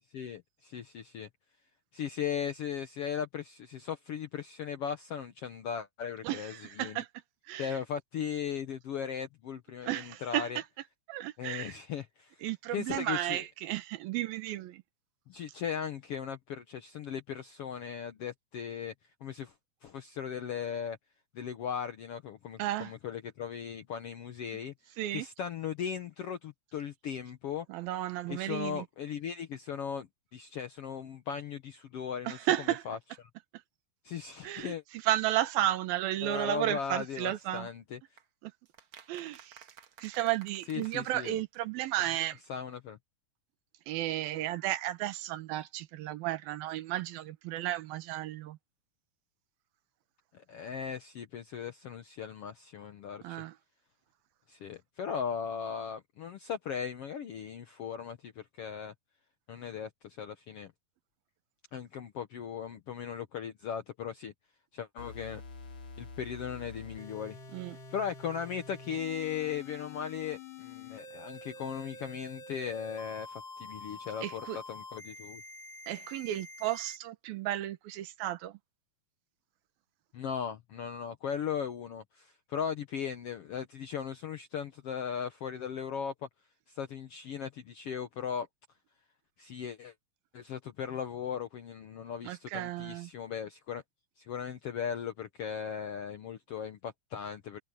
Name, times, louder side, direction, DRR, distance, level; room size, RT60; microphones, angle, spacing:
voice 1, 0.1-1.3 1.9-7.0 7.6-10.6 11.4-12.4 12.7-13.4 15.3-18.9 19.2-19.5 19.8-21.0 21.3-24.7 25.1-27.7 28.3-30.1 30.3-32.4 32.9-33.0 34.0-34.8 36.2-38.0 40.7-41.3 42.5-43.0 50.3-53.4 54.5-58.9 59.5-60.7 61.7-64.3 64.7-65.4 66.0-67.4 67.9-75.4 80.1-86.3 86.7-88.5 89.4-89.9 90.3-93.8 94.2-97.6, left 7 dB, 80° left, 1.3 m, -38 dB
voice 2, 6.2-7.1 7.5-7.8 9.8-10.6 11.1-11.8 12.4-14.8 22.6-22.9 25.0-25.3 27.7-28.9 32.2-32.8 34.4-37.7 38.4-38.5 39.1-39.7 40.0-42.4 43.9-48.6 53.2-53.6 67.5-67.8 74.2-74.6 75.9-78.6 92.2-93.1, right 14 dB, 85° right, 3.0 m, -33 dB
sound 1, 38.2-41.9 42.1-42.2 42.4-42.5 42.7-42.8, right 7 dB, 50° right, 1.7 m, -56 dB
sound 2, 65.0-77.0, left 3 dB, 35° left, 2.8 m, -47 dB
omnidirectional pair, 4.1 m